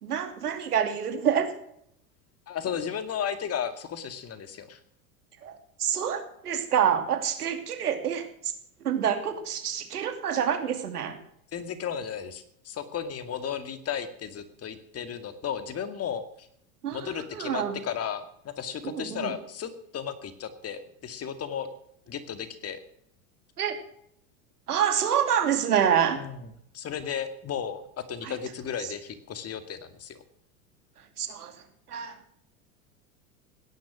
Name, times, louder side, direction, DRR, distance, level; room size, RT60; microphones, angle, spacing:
voice 1, 0.0-1.5 5.4-8.5 8.8-11.2 16.8-17.8 18.8-19.3 23.6-23.8 24.7-26.2 28.2-28.3 31.2-31.5 31.9-32.2, right 8 dB, 90° right, 7 dB, 2.9 m, -27 dB
voice 2, 2.5-4.8 11.5-16.5 16.9-21.7 22.1-22.8 26.2-26.4 26.7-27.8 28.1-30.2, left 8 dB, 35° left, 10 dB, 2.3 m, -34 dB
17.5 x 10.5 x 6.3 m, 0.72 s
hypercardioid pair, 100°, 44 cm